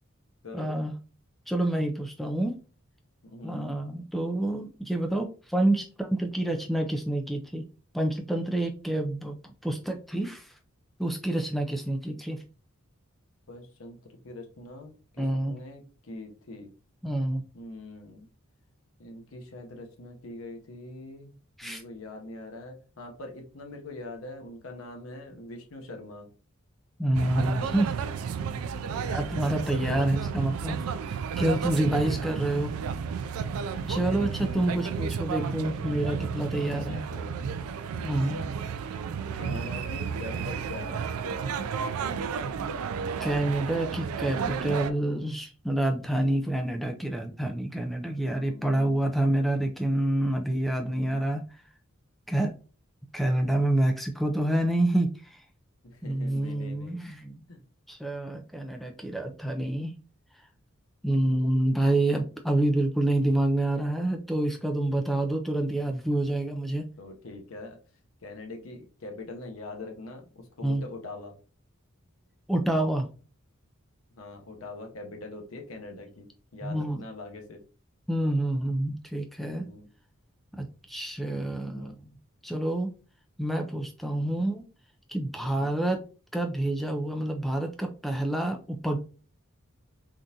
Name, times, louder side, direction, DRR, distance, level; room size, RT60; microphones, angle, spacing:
voice 1, 0.5-0.9 1.5-2.5 3.4-7.7 7.9-10.5 11.0-12.4 15.2-15.6 17.0-17.4 21.6-21.8 27.0-27.9 29.1-30.8 31.4-32.7 33.9-37.0 38.0-38.4 43.2-51.4 52.3-52.5 53.1-55.4 56.0-57.4 57.9-59.9 61.0-66.9 70.6-70.8 72.5-73.1 76.6-77.0 78.1-79.7 80.5-82.1 82.4-82.9 83.4-84.6 85.1-86.0 86.3-89.0, right 1 dB, ahead, 4 dB, 0.3 m, -28 dB
voice 2, 3.2-3.7 9.7-9.9 13.5-16.7 17.5-18.3 19.0-21.3 21.6-26.3 33.8-34.5 36.7-37.7 37.9-38.5 39.3-41.0 48.1-49.0 50.8-51.2 55.8-57.0 57.5-57.6 67.0-67.8 68.2-71.3 74.1-76.3 76.5-77.6 79.5-79.9 81.6-81.9 84.1-84.4 85.4-85.7, left 2 dB, 75° left, 3 dB, 0.8 m, -43 dB
sound 1, 27.1-44.9, right 6 dB, 85° right, 0.3 m, -32 dB
3.6 x 2.5 x 2.7 m, 0.36 s
head